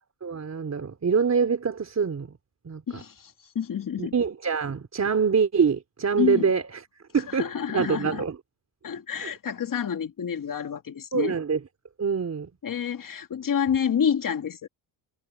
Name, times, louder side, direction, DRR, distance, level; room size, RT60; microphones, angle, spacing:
voice 1, 0.2-2.3 2.6-3.0 4.0-6.8 7.1-7.5 7.7-8.4 9.2-9.3 11.1-11.6 12.0-12.5, right 6 dB, 35° right, 3.8 m, -25 dB
voice 2, 2.9-4.1 6.2-6.5 7.4-8.2 8.8-11.4 12.6-14.7, left 8 dB, 45° left, 2.3 m, -28 dB
cardioid pair, 85°, 46 cm